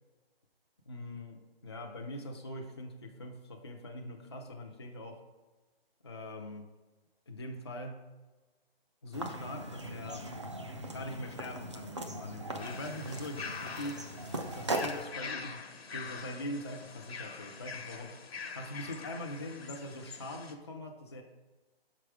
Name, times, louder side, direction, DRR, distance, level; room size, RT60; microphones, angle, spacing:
voice 1, 0.9-5.2 6.0-6.7 7.3-8.1 9.0-10.3 10.9-14.1 14.5-18.3 18.5-21.2, left 1 dB, 25° left, 1 dB, 0.4 m, -42 dB
sound 1, 9.1-15.0, right 1 dB, 30° right, 0.4 m, -39 dB
sound 2, 12.6-20.5, left 5 dB, 75° left, 1.1 m, -44 dB
5.5 x 4.9 x 4.6 m, 1.2 s
hypercardioid pair, 160°, 30 cm